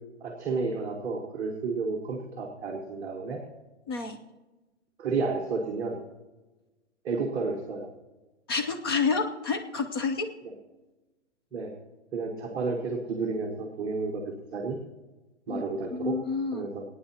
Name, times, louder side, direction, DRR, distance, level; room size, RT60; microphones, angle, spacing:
voice 1, 0.2-3.4 5.0-6.0 7.0-7.9 11.5-11.7 12.1-14.8 15.5-16.2 16.5-16.8, right 4 dB, 10° right, -4 dB, 1.0 m, -31 dB
voice 2, 3.9-4.2 8.5-10.3 15.5-15.6 15.9-16.7, left 4 dB, 20° left, 7 dB, 0.6 m, -29 dB
26.5 x 9.3 x 2.9 m, 1.1 s
hypercardioid pair, 165°, 35 cm